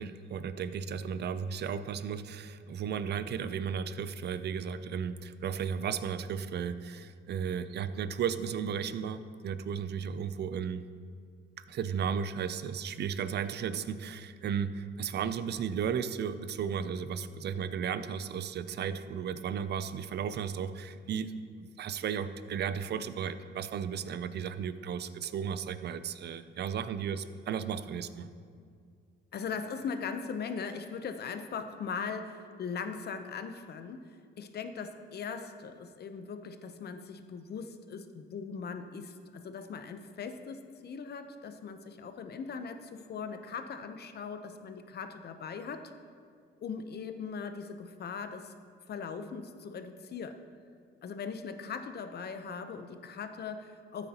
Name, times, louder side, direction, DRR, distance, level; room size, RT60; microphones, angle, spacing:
voice 1, 0.0-10.8 11.7-21.3 21.6-28.3, right 7 dB, 55° right, 12 dB, 0.6 m, -34 dB
voice 2, 29.3-34.1 34.4-45.9 46.6-48.5 48.9-50.4 51.0-54.1, left 5 dB, 55° left, 8 dB, 0.8 m, -40 dB
13.5 x 8.9 x 2.9 m, 2.1 s
cardioid pair, 90°, 20 cm